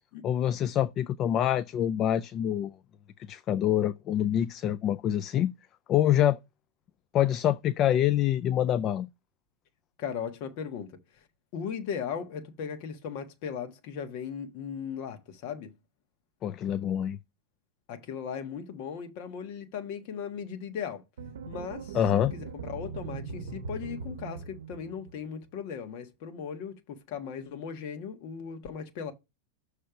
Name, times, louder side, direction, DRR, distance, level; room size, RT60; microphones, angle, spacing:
voice 1, 0.2-2.7 3.3-5.5 5.9-6.4 7.1-9.1 16.4-17.2 21.9-22.3, left 11 dB, 30° left, 0.3 m, -26 dB
voice 2, 10.0-11.0 11.5-15.7 17.9-21.0 21.5-22.0 22.3-29.1, left 7 dB, 45° left, 1.4 m, -37 dB
sound 1, 21.2-25.4, right 5 dB, 90° right, 0.7 m, -40 dB
6.5 x 3.2 x 5.7 m
supercardioid pair, 160°, 0 cm